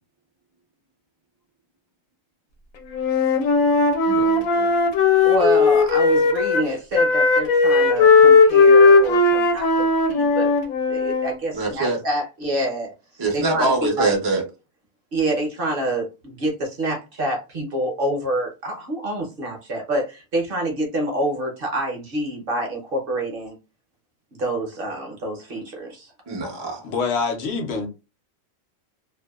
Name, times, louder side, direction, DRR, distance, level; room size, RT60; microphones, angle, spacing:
Wind instrument woodwind instrument, 2.9-6.7 6.9-11.3, left 4 dB, 85° left, 1.0 m, -16 dB
voice 1, 4.0-4.7 11.5-12.0 13.2-14.4 26.3-26.8, right 2 dB, 35° right, 0.4 m, -24 dB
voice 2, 5.2-10.5 10.9-14.1 15.1-23.6 24.4-26.1, right 1 dB, 55° right, 0.7 m, -27 dB
voice 3, 26.8-27.9, left 4 dB, 65° left, 0.8 m, -25 dB
2.6 x 2.1 x 2.2 m
omnidirectional pair, 1.4 m